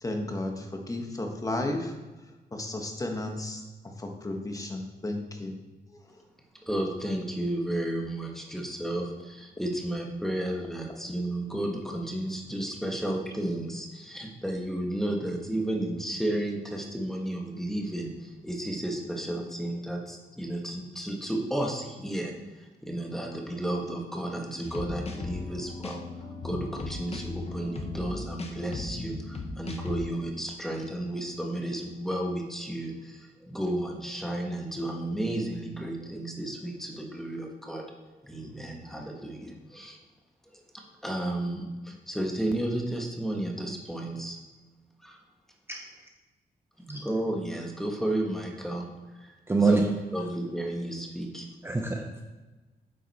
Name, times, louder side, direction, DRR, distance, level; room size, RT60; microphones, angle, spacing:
voice 1, 0.0-1.9 2.5-5.6 5.9-6.2, left 1 dB, 20° left, 3 dB, 1.3 m, -34 dB
voice 2, 6.6-26.0 26.4-37.9 38.2-40.0 40.5-44.4 45.0-45.2 47.0-48.9 49.1-51.5, right 1 dB, ahead, 1 dB, 1.4 m, -33 dB
sound 1, 24.6-30.0, left 3 dB, 40° left, 1.0 m, -37 dB
voice 3, 49.5-49.8 51.6-52.2, right 4 dB, 15° right, 2 dB, 0.7 m, -25 dB
9.0 x 7.8 x 4.2 m, 1.2 s
wide cardioid pair, 145°, 17 cm